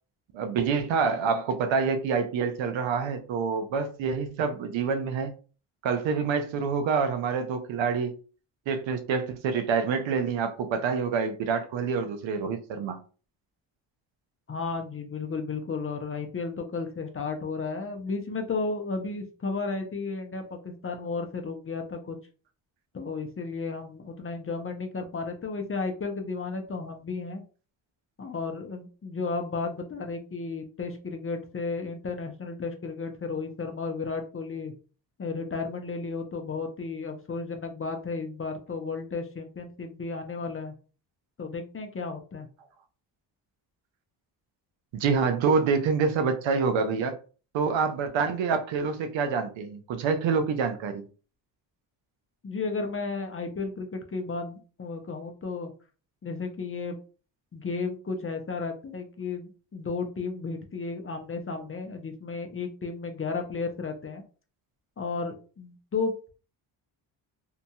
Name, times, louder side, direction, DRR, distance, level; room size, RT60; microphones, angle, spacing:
voice 1, 0.3-5.3 5.8-8.2 8.7-13.0 44.9-47.2 47.5-51.1, right 5 dB, 70° right, 0.7 m, -27 dB
voice 2, 14.5-22.2 22.9-27.4 28.2-34.7 35.2-40.7 41.4-42.5 52.4-55.7 56.2-57.0 57.5-64.2 65.0-66.3, left 4 dB, 30° left, 0.7 m, -33 dB
2.8 x 2.6 x 2.3 m
supercardioid pair, 60°, 47 cm